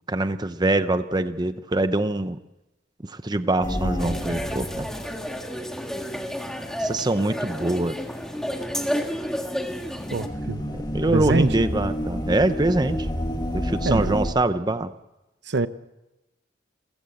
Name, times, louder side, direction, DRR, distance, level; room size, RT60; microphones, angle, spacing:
voice 1, 0.1-2.4 3.0-4.9 6.8-7.9 10.7-13.0 13.5-14.9, right 2 dB, 20° right, 11 dB, 0.7 m, -24 dB
sound 1, 3.6-5.6 5.9-6.0 6.9-7.1 9.3-14.3, equal, 20° left, 1.9 m, -29 dB
sound 2, 4.0-10.3, equal, 5° left, 1.6 m, -31 dB
voice 2, 10.1-10.7 11.1-11.5 13.8-14.2 15.5-15.7, right 3 dB, 65° right, 13 dB, 0.8 m, -24 dB
28.5 x 15.5 x 7.8 m, 1.0 s
head